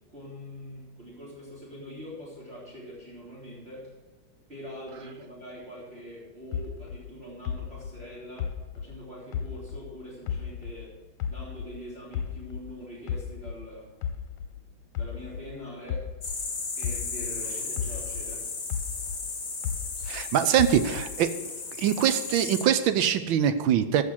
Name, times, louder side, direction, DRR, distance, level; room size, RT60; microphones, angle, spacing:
voice 1, 0.1-3.9 4.5-10.9 11.3-13.9 14.9-16.1 16.8-18.5, equal, 30° right, -7 dB, 3.6 m, -43 dB
sound 1, 6.5-9.9 10.3-12.7 13.1-17.4 17.8-20.2 20.6-21.3, left 8 dB, 85° left, 1.6 m, -34 dB
sound 2, 16.2-22.7, left 4 dB, 55° left, 2.4 m, -35 dB
voice 2, 20.1-21.3 21.8-24.0, right 9 dB, 75° right, 11 dB, 1.5 m, -23 dB
14.5 x 6.0 x 6.3 m, 1.2 s
omnidirectional pair, 2.2 m